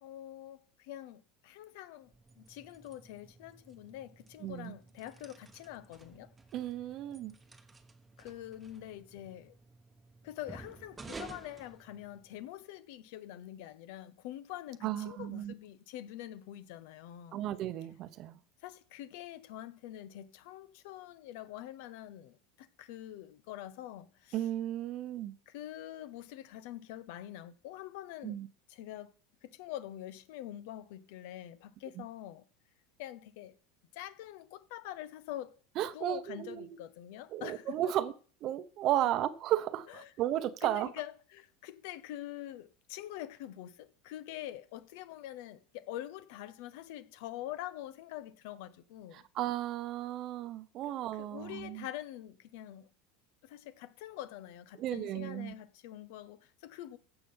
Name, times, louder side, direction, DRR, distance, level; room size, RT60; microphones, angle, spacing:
voice 1, 0.0-6.3 8.2-9.5 10.2-17.5 18.6-24.4 25.5-28.4 28.7-29.1 29.4-32.4 33.0-33.5 33.9-35.5 35.9-37.8 39.9-40.1 40.6-49.2 50.8-52.9 53.4-57.0, left 13 dB, 65° left, 0.9 m, -45 dB
sound 1, 2.0-12.5, right 3 dB, 10° right, 1.0 m, -53 dB
voice 2, 4.4-4.7 6.5-7.3 14.8-15.5 17.3-18.4 24.3-25.3 28.2-28.5 32.0-32.1 35.8-36.8 37.3-38.1 38.4-40.9 49.1-51.9 54.8-55.5, right 13 dB, 45° right, 0.9 m, -34 dB
15.5 x 5.9 x 5.6 m
supercardioid pair, 145°, 0 cm